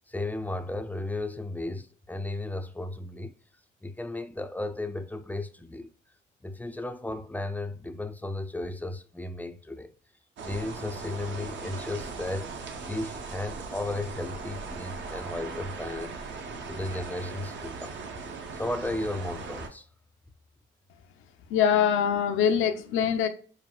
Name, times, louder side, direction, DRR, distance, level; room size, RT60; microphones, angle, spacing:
voice 1, 0.1-3.4 3.8-5.9 6.4-9.9 10.4-12.5 12.9-16.1 16.7-18.0 18.5-19.9, left 2 dB, 10° left, 0.3 m, -34 dB
sound 1, 10.4-19.7, right 4 dB, 70° right, 0.7 m, -39 dB
voice 2, 21.5-23.3, left 8 dB, 85° left, 0.5 m, -23 dB
5.3 x 2.2 x 2.3 m
cardioid pair, 90°, 20 cm